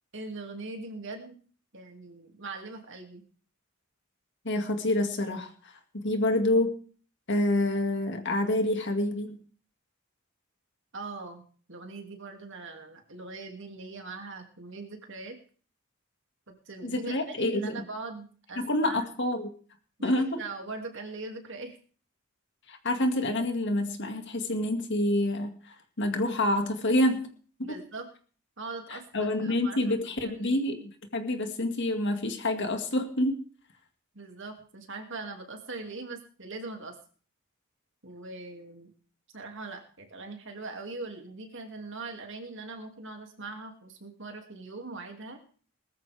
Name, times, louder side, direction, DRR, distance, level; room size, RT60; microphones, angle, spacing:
voice 1, 0.1-1.4 1.7-3.2 10.9-11.4 11.7-15.4 16.5-19.0 20.0-21.7 27.6-28.1 28.6-29.9 30.2-30.7 34.1-36.9 38.0-38.9 39.3-45.4, right 3 dB, 60° right, 4 dB, 2.5 m, -41 dB
voice 2, 4.4-5.5 5.9-6.8 7.3-9.4 16.8-17.8 18.6-19.5 20.0-20.4 22.7-25.6 26.0-27.3 27.6-27.8 28.9-33.4, left 1 dB, 55° left, 5 dB, 2.2 m, -27 dB
20.0 x 13.5 x 3.5 m, 0.42 s
head